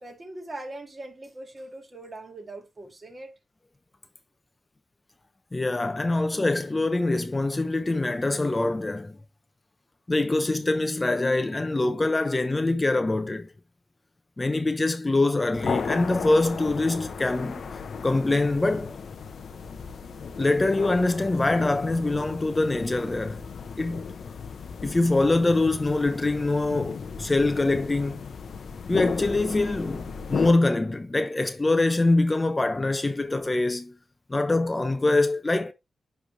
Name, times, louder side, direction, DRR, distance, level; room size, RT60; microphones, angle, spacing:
voice 1, 0.0-3.4, right 2 dB, 40° right, 2.3 m, -41 dB
voice 2, 5.5-9.2 10.1-13.5 14.4-17.6 18.0-19.0 20.4-23.5 23.8-24.1 24.8-28.3 28.9-33.9 34.3-35.7, left 2 dB, 25° left, 0.7 m, -24 dB
sound 1, 15.5-30.5, left 6 dB, 80° left, 0.8 m, -35 dB
10.0 x 3.4 x 3.3 m
cardioid pair, 75°, 0 cm